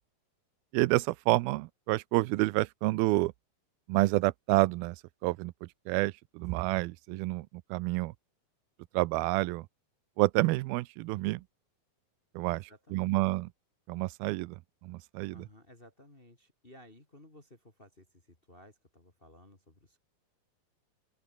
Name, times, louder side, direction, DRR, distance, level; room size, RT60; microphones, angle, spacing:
voice 1, 0.7-3.3 3.9-5.0 5.2-8.1 8.9-9.7 10.2-11.4 12.4-12.6 12.9-13.5 13.9-14.6 14.8-15.4, right 21 dB, 85° right, 2.5 m, -29 dB
voice 2, 12.5-13.3 15.3-20.0, left 1 dB, 15° left, 2.5 m, -57 dB
open air
omnidirectional pair, 4.3 m